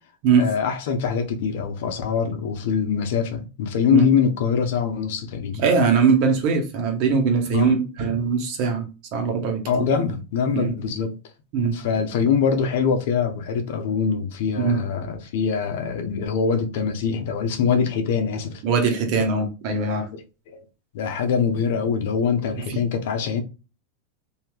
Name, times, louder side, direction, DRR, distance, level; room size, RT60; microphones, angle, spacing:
voice 1, 0.4-5.6 7.5-7.7 9.7-11.1 11.7-18.6 20.1-20.6 20.9-23.4, left 6 dB, 70° left, 0.7 m, -23 dB
voice 2, 5.6-8.8 9.1-9.9 10.5-10.7 11.5-11.8 14.6-14.8 18.6-20.1 22.7-22.8, right 5 dB, 55° right, 1.1 m, -21 dB
3.2 x 2.7 x 2.2 m
supercardioid pair, 125°, 0 cm